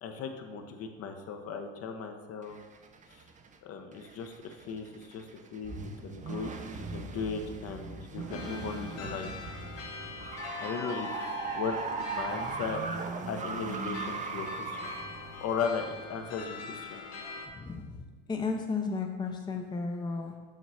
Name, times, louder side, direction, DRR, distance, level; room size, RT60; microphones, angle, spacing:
voice 1, 0.0-2.6 3.1-3.2 3.6-9.3 10.6-11.2 11.5-12.9 13.3-14.9 15.4-17.0, left 5 dB, 50° left, 5 dB, 0.9 m, -37 dB
sound 1, 2.4-3.6 4.0-16.5, right 4 dB, 25° right, 0.6 m, -39 dB
sound 2, 8.3-17.5, left 5 dB, 75° left, 1.1 m, -43 dB
voice 2, 17.5-20.4, left 4 dB, 15° left, 4 dB, 0.6 m, -34 dB
7.3 x 3.1 x 5.6 m, 1.3 s
supercardioid pair, 90°, 30 cm